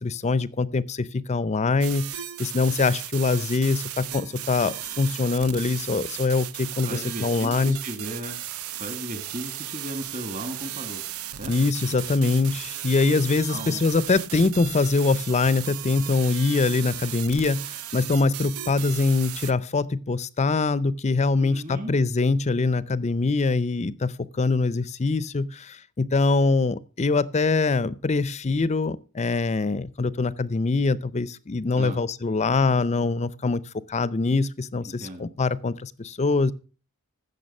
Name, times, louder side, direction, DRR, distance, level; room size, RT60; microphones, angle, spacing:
voice 1, 0.0-7.8 11.5-33.6 33.9-36.5, left 3 dB, 30° left, 0.5 m, -23 dB
sound 1, 1.8-19.5, right 12 dB, 75° right, 0.6 m, -36 dB
voice 2, 6.8-8.4 8.7-11.0 11.3-11.5 13.5-13.8 21.4-21.9 31.8-32.0 34.8-35.2, right 1 dB, 35° right, 1.8 m, -36 dB
15.5 x 6.6 x 5.4 m
head